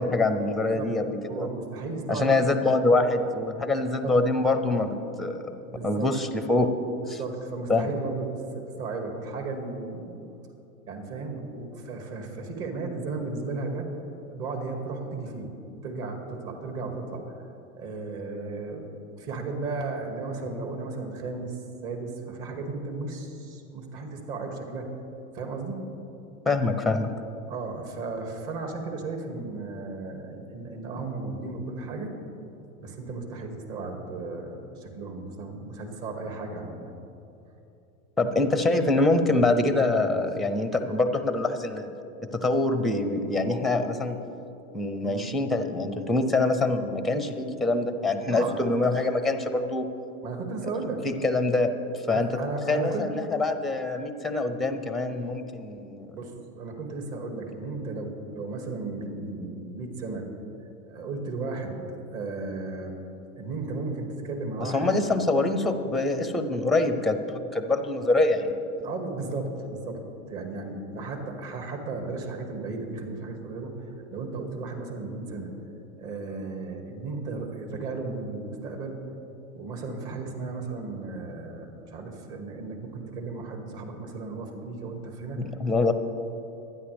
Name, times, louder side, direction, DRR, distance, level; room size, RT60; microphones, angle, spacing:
voice 1, 0.0-1.5 2.1-5.5 5.8-6.7 7.1-7.2 7.7-7.9 26.5-27.1 38.2-41.9 42.3-44.2 44.7-49.9 51.0-51.7 52.1-52.3 52.7-56.2 64.6-68.5 68.8-68.9 85.4-85.9, left 2 dB, ahead, 8 dB, 0.6 m, -25 dB
voice 2, 0.6-1.0 1.3-2.3 4.0-4.1 5.7-6.1 7.2-8.3 8.5-10.2 10.9-13.9 14.3-15.5 15.8-17.3 17.7-18.9 19.2-24.9 25.3-25.8 27.5-32.1 32.8-36.9 45.0-45.3 48.3-48.7 50.2-51.0 52.1-53.1 56.1-60.3 60.9-62.9 63.3-64.9 68.8-70.0 70.3-73.7 74.1-75.5 76.0-79.0 79.5-85.4, right 3 dB, 45° right, 3 dB, 2.4 m, -35 dB
24.0 x 9.6 x 3.5 m, 2.9 s
hypercardioid pair, 120°, 44 cm